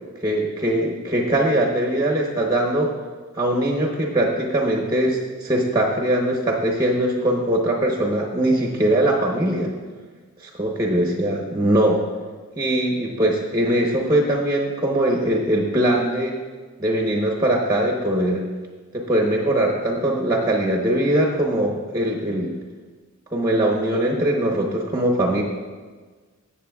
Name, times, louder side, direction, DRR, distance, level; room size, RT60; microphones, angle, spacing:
voice 1, 0.2-2.9 3.4-9.7 10.6-12.0 12.6-16.3 16.8-18.4 18.9-22.5 23.3-25.4, right 1 dB, 15° right, -1 dB, 0.9 m, -21 dB
15.0 x 7.2 x 2.3 m, 1.4 s
head